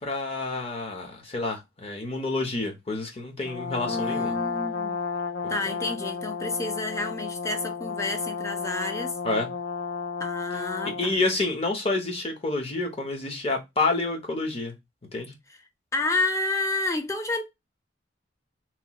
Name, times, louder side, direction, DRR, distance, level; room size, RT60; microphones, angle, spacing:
voice 1, 0.0-4.4 9.2-9.5 11.0-14.7 15.1-15.3, left 3 dB, 35° left, 0.8 m, -28 dB
Brass instrument, 3.4-11.2, left 5 dB, 70° left, 0.5 m, -32 dB
voice 2, 3.9-5.0 5.5-9.1 10.2-11.2 15.9-17.4, left 2 dB, 15° left, 0.5 m, -30 dB
3.0 x 2.3 x 2.9 m
head